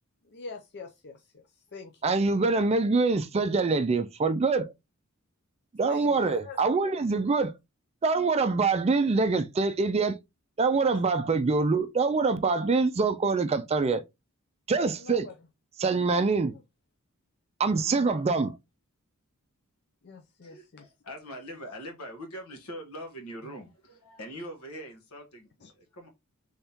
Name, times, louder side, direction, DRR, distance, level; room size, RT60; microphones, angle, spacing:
voice 1, 0.2-1.4 1.7-2.1 5.8-6.6 10.9-11.0 15.0-15.3 16.5-16.6 17.7-18.2 20.0-20.9 25.6-25.7, left 4 dB, 50° left, 0.5 m, -45 dB
voice 2, 2.0-4.7 5.8-7.5 8.0-10.2 10.6-14.0 14.7-15.3 15.8-16.5 17.6-18.5, right 4 dB, 30° right, 0.3 m, -25 dB
voice 3, 20.4-26.1, equal, 75° left, 1.2 m, -42 dB
3.5 x 3.5 x 2.8 m
head